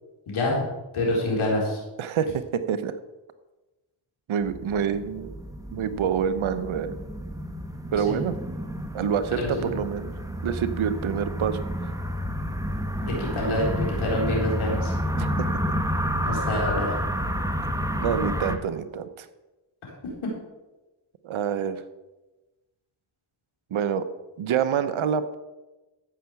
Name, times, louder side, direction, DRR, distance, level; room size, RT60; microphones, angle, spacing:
voice 1, 0.3-0.7 0.9-1.8 8.1-8.2 9.4-9.7 13.0-14.9 16.2-16.9, left 1 dB, 90° left, -3 dB, 4.4 m, -26 dB
voice 2, 2.0-2.9 4.3-5.3 5.7-7.0 7.9-8.3 8.9-10.1 10.4-11.9 15.2-15.5 18.0-19.3 21.2-21.8 23.7-24.1 24.4-25.3, right 8 dB, 75° right, 11 dB, 0.9 m, -27 dB
sound 1, 4.4-18.6, equal, 5° right, 1.4 m, -30 dB
14.5 x 5.7 x 7.1 m, 1.1 s
cardioid pair, 50°, 48 cm